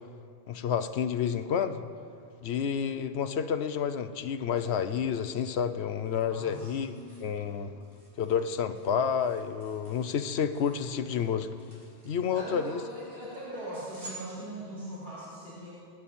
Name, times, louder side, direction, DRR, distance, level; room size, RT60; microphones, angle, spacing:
voice 1, 0.5-1.8 2.4-6.9 7.2-7.7 8.2-11.5 12.1-12.8, left 7 dB, 80° left, 10 dB, 1.0 m, -30 dB
sound 1, 5.5-15.1, right 2 dB, 80° right, 4.9 m, -54 dB
voice 2, 6.3-7.3 12.3-15.7, right 1 dB, 65° right, -11 dB, 4.4 m, -41 dB
26.5 x 10.0 x 4.3 m, 2.4 s
omnidirectional pair, 1.1 m